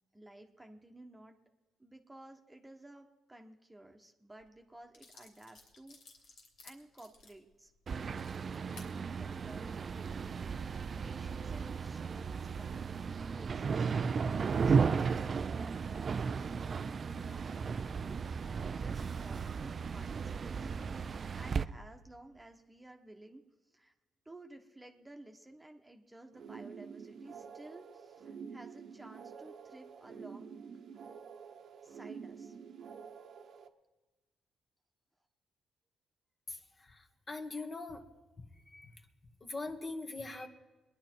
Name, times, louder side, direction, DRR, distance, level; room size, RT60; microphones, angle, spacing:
voice 1, 0.1-1.4 1.8-7.7 8.5-10.5 11.0-21.0 21.4-23.4 23.7-23.9 24.2-30.6 31.8-32.6, right 1 dB, 10° right, 3 dB, 1.3 m, -55 dB
sound 1, 4.4-4.5 4.9-8.9 9.5-9.7, left 3 dB, 80° left, 3.0 m, -57 dB
sound 2, 7.9-21.6, right 5 dB, 45° right, 0.5 m, -35 dB
sound 3, 26.3-33.7, right 6 dB, 65° right, 1.1 m, -48 dB
voice 2, 36.5-38.0 38.4-38.5 38.7-38.9 39.4-40.5, left 3 dB, 30° left, 5 dB, 1.5 m, -42 dB
22.5 x 10.5 x 4.6 m, 1.2 s
cardioid pair, 90°, 0 cm